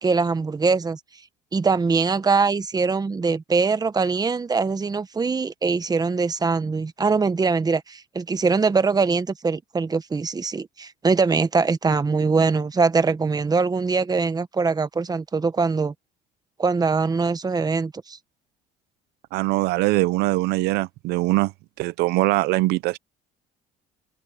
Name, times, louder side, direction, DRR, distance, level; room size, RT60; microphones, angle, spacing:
voice 1, 0.0-1.0 1.5-15.9 16.6-18.2, right 4 dB, 25° right, 1.2 m, -22 dB
voice 2, 19.3-21.5 21.8-23.0, right 19 dB, 80° right, 0.6 m, -22 dB
cardioid pair, 95°, 17 cm